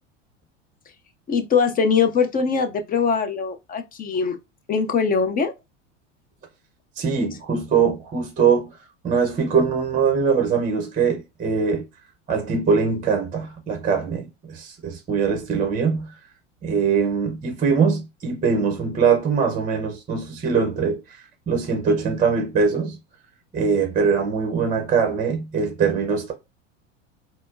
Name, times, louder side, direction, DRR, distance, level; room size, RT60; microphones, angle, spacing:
voice 1, 1.3-4.4 4.7-5.5, left 5 dB, 25° left, 0.5 m, -22 dB
voice 2, 7.0-8.7 9.0-11.8 12.3-16.1 16.6-23.0 23.5-26.3, right 5 dB, 20° right, 0.7 m, -22 dB
4.1 x 2.0 x 2.5 m
supercardioid pair, 105°, 38 cm